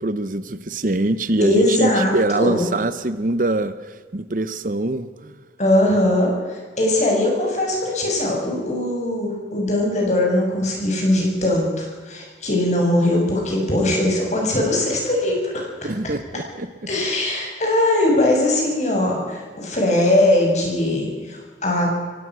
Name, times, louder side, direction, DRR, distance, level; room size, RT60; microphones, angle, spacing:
voice 1, 0.0-5.3 15.8-16.7, right 2 dB, 45° right, 14 dB, 0.9 m, -23 dB
voice 2, 1.4-2.6 5.6-15.9 16.9-21.9, left 1 dB, 40° left, 0 dB, 6.8 m, -20 dB
23.5 x 17.5 x 6.2 m, 1.5 s
head